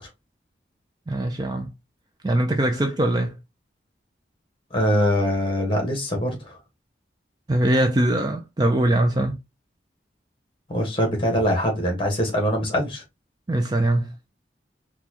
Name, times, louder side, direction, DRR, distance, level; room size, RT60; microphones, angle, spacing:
voice 1, 1.1-1.7 2.2-3.3 7.5-9.4 13.5-14.1, right 1 dB, 20° right, 0.4 m, -22 dB
voice 2, 4.7-6.6 10.7-13.0, equal, 30° left, 1.3 m, -23 dB
4.3 x 2.3 x 2.8 m
head